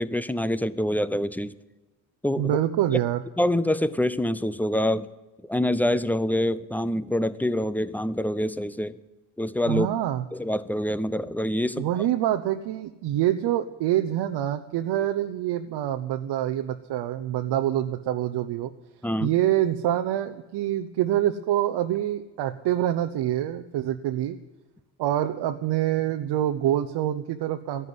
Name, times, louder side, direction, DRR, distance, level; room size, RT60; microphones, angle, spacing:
voice 1, 0.0-1.5 2.2-2.5 3.4-5.1 5.4-9.0 9.4-9.9 10.3-11.9 19.0-19.3, left 1 dB, 5° left, 16 dB, 0.6 m, -26 dB
voice 2, 2.4-3.2 9.7-10.2 11.8-18.7 19.2-24.4 25.0-27.9, right 12 dB, 60° right, 6 dB, 0.9 m, -26 dB
13.5 x 11.0 x 9.7 m, 1.1 s
supercardioid pair, 75°, 48 cm